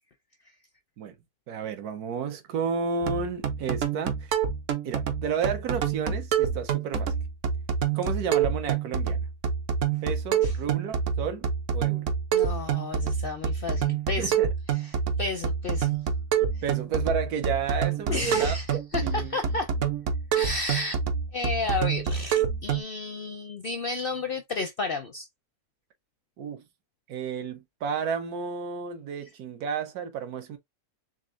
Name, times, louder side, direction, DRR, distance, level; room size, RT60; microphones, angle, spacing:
voice 1, 1.5-4.3 4.8-7.1 7.9-9.2 10.0-12.1 14.2-14.5 16.6-18.6 19.0-19.4 26.4-26.6 27.1-30.6, right 6 dB, 80° right, 1.3 m, -32 dB
sound 1, 3.0-22.8, right 7 dB, 60° right, 1.0 m, -27 dB
voice 2, 12.3-14.4 14.7-16.0 16.5-16.6 18.1-19.7 20.3-21.0 21.3-25.3, left 3 dB, 60° left, 0.5 m, -32 dB
4.1 x 3.4 x 2.5 m
omnidirectional pair, 1.6 m